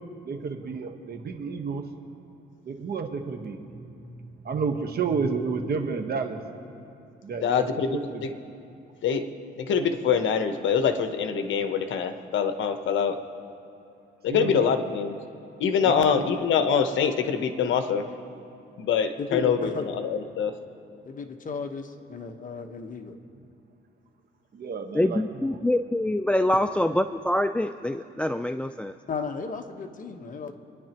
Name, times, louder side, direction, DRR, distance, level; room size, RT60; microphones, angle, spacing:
voice 1, 0.2-1.9 2.6-6.4 7.2-7.6 7.9-8.3 14.3-14.9 15.8-16.3 24.5-25.6, right 5 dB, 50° right, 5 dB, 1.3 m, -31 dB
voice 2, 7.4-8.3 9.0-9.3 9.6-13.2 14.2-15.1 15.6-18.0 18.8-20.5, left 7 dB, 75° left, 8 dB, 1.0 m, -24 dB
voice 3, 19.2-19.9 21.0-23.2 29.1-30.5, left 4 dB, 40° left, 5 dB, 1.2 m, -34 dB
voice 4, 24.9-29.0, left 1 dB, 5° left, 9 dB, 0.3 m, -25 dB
28.5 x 10.5 x 3.0 m, 2.7 s
cardioid pair, 90°, 20 cm